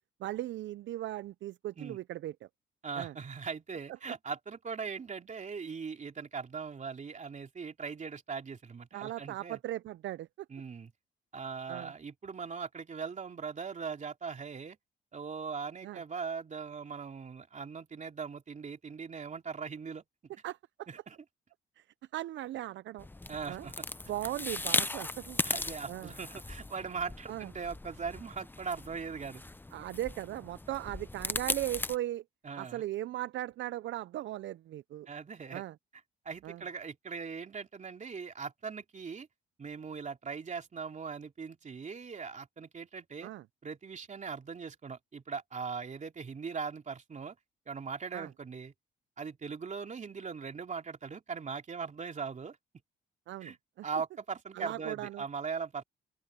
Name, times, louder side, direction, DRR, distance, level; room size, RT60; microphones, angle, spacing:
voice 1, 0.2-2.5 3.0-3.1 8.9-10.3 11.7-11.9 15.8-16.0 20.4-20.9 21.8-21.9 22.1-23.1 23.5-23.7 24.1-25.4 25.9-26.1 27.3-27.5 29.7-32.2 32.6-35.1 35.5-35.7 36.4-36.6 43.2-43.4 48.1-48.3 53.3-53.9 54.5-55.2, right 14 dB, 65° right, 0.5 m, -38 dB
voice 2, 2.8-9.6 10.5-10.9 11.3-14.8 15.1-20.0 20.9-21.2 23.3-23.9 25.4-29.4 32.4-32.8 35.1-35.6 36.2-39.3 39.6-43.3 43.6-47.4 47.7-48.7 49.2-52.6 53.4-53.6 53.8-55.8, right 5 dB, 40° right, 2.9 m, -40 dB
sound 1, 23.0-32.0, left 2 dB, 10° left, 0.6 m, -37 dB
open air
cardioid pair, 90°, 20 cm